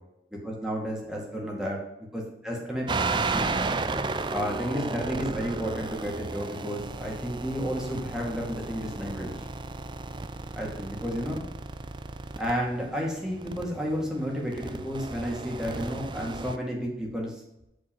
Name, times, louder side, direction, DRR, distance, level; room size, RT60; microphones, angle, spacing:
voice 1, 0.4-1.8 2.1-3.5 4.3-9.3 10.5-11.4 12.4-17.3, equal, 5° right, -2 dB, 2.2 m, -32 dB
sound 1, 2.9-16.6, right 3 dB, 25° right, 0.4 m, -34 dB
8.5 x 4.4 x 7.2 m, 0.85 s
head